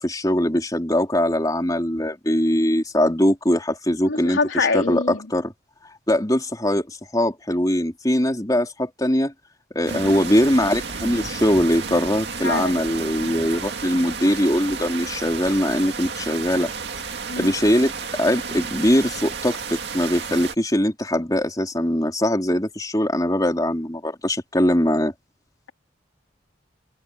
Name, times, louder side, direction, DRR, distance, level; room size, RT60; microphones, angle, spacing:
voice 1, 0.0-5.5 6.1-9.3 9.7-16.7 17.4-25.1, equal, 20° left, 3.7 m, -21 dB
voice 2, 4.0-5.3 12.4-12.8 13.5-13.6 17.3-17.5, left 3 dB, 80° left, 3.2 m, -25 dB
sound 1, 9.9-20.5, right 5 dB, 55° right, 2.4 m, -32 dB
head